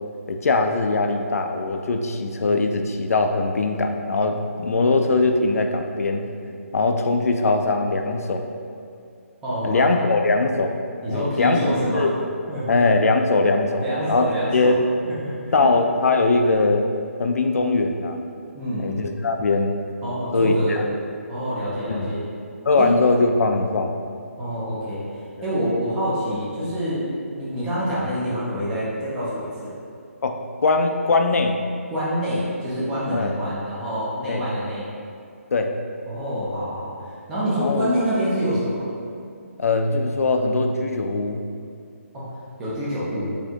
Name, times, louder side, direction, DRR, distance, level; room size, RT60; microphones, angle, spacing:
voice 1, 0.3-6.3 6.7-8.5 9.6-10.7 11.1-11.6 11.9-12.1 12.7-14.8 15.5-16.9 17.2-18.2 18.8-19.8 20.3-20.8 21.9-22.1 22.6-23.9 30.2-31.6 33.1-33.3 34.3-34.4 35.5-35.7 37.6-37.9 39.6-41.4, left 3 dB, 80° left, 5 dB, 0.4 m, -21 dB
voice 2, 9.4-10.1 11.0-12.1 12.5-12.8 13.8-14.7 15.0-15.7 18.5-18.9 20.0-20.8 21.3-22.2 22.8-22.9 24.4-25.0 25.4-27.0 27.3-29.7 31.9-34.9 36.1-36.9 37.3-38.9 42.1-42.3 42.6-43.3, equal, 5° right, -9 dB, 0.3 m, -26 dB
4.2 x 2.5 x 2.8 m, 2.3 s
hypercardioid pair, 175°, 8 cm